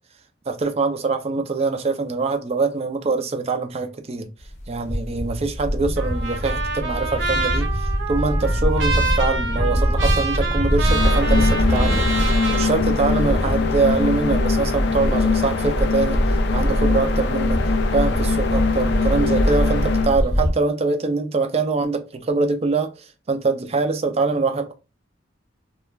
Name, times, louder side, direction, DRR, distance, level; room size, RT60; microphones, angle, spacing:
voice 1, 0.5-4.3 4.7-12.1 12.5-16.2 16.5-17.6 17.9-24.7, right 3 dB, 30° right, 0.4 m, -24 dB
sound 1, 4.4-20.5, equal, 35° left, 0.7 m, -23 dB
Trumpet, 6.0-12.7, right 4 dB, 65° right, 0.7 m, -27 dB
sound 2, 10.9-20.2, left 5 dB, 55° left, 0.3 m, -23 dB
2.3 x 2.1 x 3.1 m
head